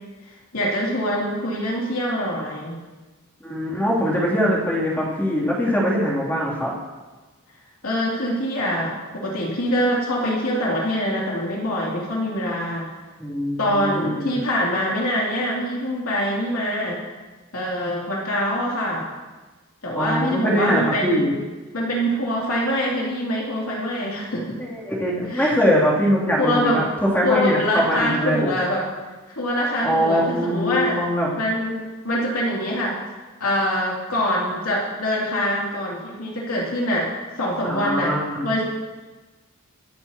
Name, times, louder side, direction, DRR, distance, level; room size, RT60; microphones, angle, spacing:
voice 1, 0.2-2.8 7.8-12.9 13.6-17.0 17.5-19.1 19.8-21.2 21.7-24.6 25.3-25.5 26.4-26.8 27.2-28.9 29.3-31.0 31.4-33.0 33.4-37.1 37.4-38.1 38.4-38.6, equal, 75° left, -4 dB, 2.9 m, -24 dB
voice 2, 3.4-6.7 13.2-14.4 19.9-21.4 24.6-28.6 29.8-31.3 37.6-38.5, equal, 10° left, -5 dB, 2.9 m, -22 dB
24.5 x 9.6 x 2.9 m, 1.3 s
head